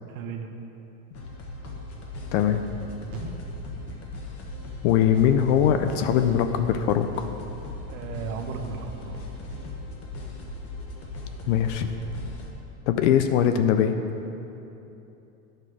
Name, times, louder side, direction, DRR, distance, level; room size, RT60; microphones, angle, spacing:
voice 1, 0.1-0.5 7.9-9.2, right 6 dB, 70° right, 4 dB, 1.1 m, -35 dB
sound 1, 1.1-12.5, left 2 dB, 30° left, 1.2 m, -38 dB
sound 2, 1.9-2.1 2.7-2.8 3.1-3.6 3.9-4.3 4.6-5.0 5.4-5.8 6.1-6.5 6.9-7.0, right 4 dB, 35° right, 1.1 m, -43 dB
voice 2, 2.3-2.6 4.8-7.2 11.5-11.9 12.9-14.0, left 9 dB, 55° left, 8 dB, 0.5 m, -21 dB
10.5 x 6.5 x 4.9 m, 2.9 s
supercardioid pair, 150°, 43 cm